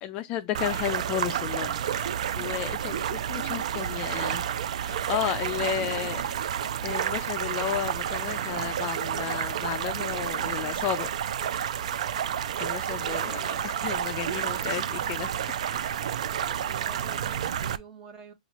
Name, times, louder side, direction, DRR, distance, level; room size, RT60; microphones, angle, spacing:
voice 1, 0.0-4.4 4.8-6.2 6.8-11.1 12.6-16.0 16.6-16.7, left 12 dB, 30° left, 0.4 m, -33 dB
sound 1, 0.5-17.8, right 9 dB, 65° right, 0.4 m, -30 dB
voice 2, 5.6-6.1 12.9-13.4 16.5-18.3, right 6 dB, 20° right, 1.2 m, -48 dB
5.3 x 2.4 x 2.9 m
hypercardioid pair, 145°, 4 cm